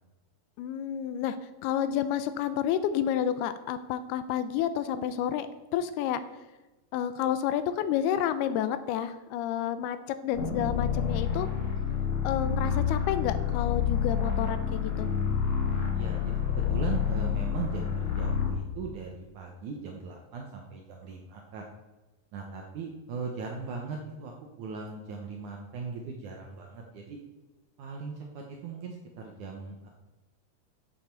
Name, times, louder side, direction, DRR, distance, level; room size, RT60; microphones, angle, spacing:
voice 1, 0.6-1.4 1.6-5.5 5.7-6.2 6.9-11.5 12.2-15.1, left 10 dB, 85° left, 12 dB, 2.5 m, -30 dB
sound 1, 10.3-18.6, left 7 dB, 55° left, 2.8 m, -28 dB
voice 2, 15.9-21.7 22.3-24.3 24.6-27.2 27.8-29.9, right 5 dB, 75° right, 1 dB, 1.8 m, -39 dB
11.5 x 7.6 x 4.5 m, 1.1 s
omnidirectional pair, 4.6 m